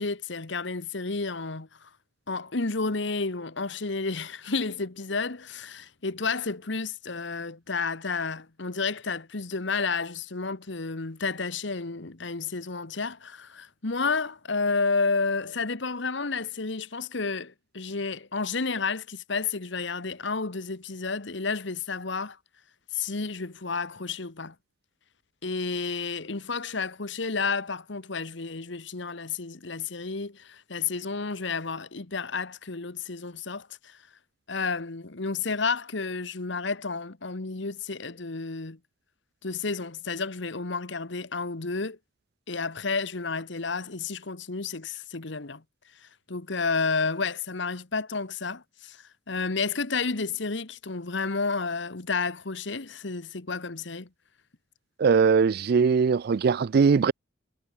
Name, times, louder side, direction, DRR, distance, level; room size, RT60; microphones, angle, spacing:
voice 1, 0.0-1.9 2.3-22.4 22.9-24.5 25.4-34.0 34.5-38.8 39.4-42.0 42.5-45.6 46.3-54.1, left 4 dB, 60° left, 1.3 m, -31 dB
voice 2, 55.0-57.1, right 5 dB, 50° right, 0.3 m, -21 dB
head